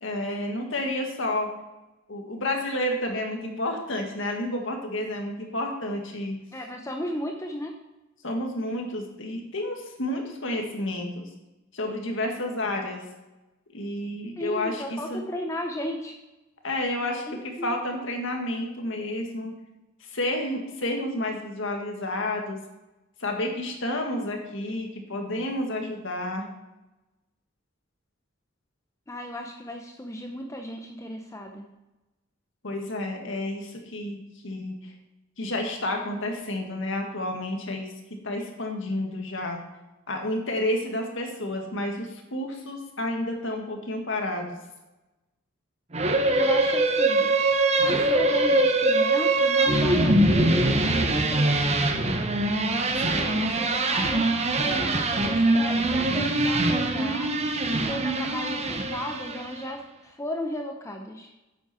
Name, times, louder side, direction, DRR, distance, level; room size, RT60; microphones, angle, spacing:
voice 1, 0.0-1.5 2.1-6.4 8.2-11.3 11.7-13.0 13.7-15.2 16.6-19.5 20.1-22.6 23.2-26.5 32.6-34.9 35.4-37.9 38.2-39.6 40.1-44.6 53.0-53.3, left 1 dB, 70° left, 2 dB, 1.9 m, -30 dB
voice 2, 6.5-7.7 14.4-16.2 17.3-17.8 29.1-31.7 46.3-47.3 47.9-51.7 52.7-54.3 54.6-57.3 57.7-61.3, left 1 dB, 15° left, 3 dB, 0.7 m, -35 dB
sound 1, 45.9-59.6, right 2 dB, 35° right, 1.0 m, -23 dB
9.9 x 8.3 x 4.3 m, 1.0 s
head